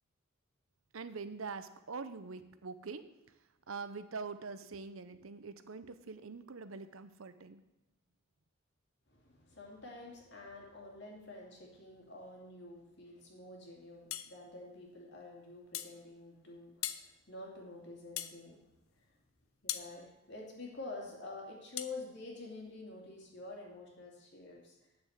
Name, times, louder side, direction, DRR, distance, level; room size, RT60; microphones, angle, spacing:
voice 1, 0.9-3.1 3.7-7.6, right 4 dB, 80° right, 11 dB, 0.8 m, -44 dB
voice 2, 9.1-19.1 19.6-24.8, left 2 dB, 55° left, 0 dB, 2.6 m, -48 dB
sound 1, 14.1-14.3 15.7-16.0 16.8-17.1 18.2-18.4 19.7-19.9 21.8-22.0, left 12 dB, 80° left, 0.6 m, -38 dB
8.8 x 7.0 x 8.0 m, 0.93 s
head